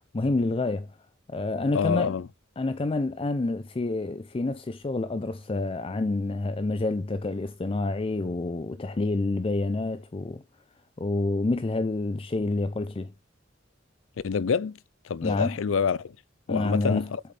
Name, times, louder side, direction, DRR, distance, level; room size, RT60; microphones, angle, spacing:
voice 1, 0.1-0.9 1.3-2.1 2.6-10.4 11.0-13.1 15.2-15.6 16.5-17.0, left 2 dB, 30° left, 0.4 m, -28 dB
voice 2, 1.7-2.3 14.2-14.8 15.0-16.2 16.5-17.2, left 6 dB, 80° left, 0.4 m, -26 dB
7.8 x 6.7 x 3.3 m
head